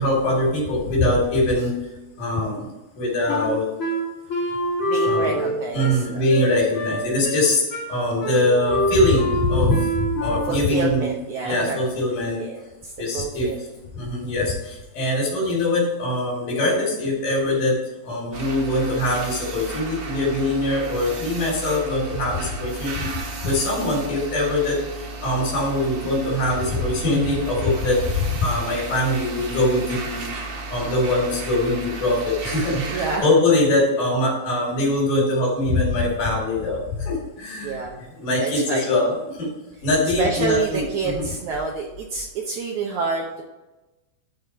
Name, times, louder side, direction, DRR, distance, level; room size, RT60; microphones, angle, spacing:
voice 1, 0.0-1.7 2.2-2.7 3.0-3.7 5.1-5.4 5.7-11.1 11.4-12.4 13.0-13.5 13.9-17.8 18.0-23.1 23.4-24.8 25.2-30.3 30.7-37.8 38.2-39.5 39.8-41.3, left 1 dB, 75° left, -5 dB, 4.6 m, -22 dB
Wind instrument woodwind instrument, 3.3-10.7, equal, 35° left, 1.4 m, -26 dB
voice 2, 4.8-6.3 10.5-11.8 12.4-13.6 32.9-33.3 37.6-38.0 38.4-38.9 40.2-43.4, right 4 dB, 70° right, -1 dB, 2.0 m, -28 dB
sound 1, 18.3-33.2, right 3 dB, 55° right, 1.9 m, -34 dB
12.0 x 4.3 x 4.6 m, 1.1 s
omnidirectional pair, 4.1 m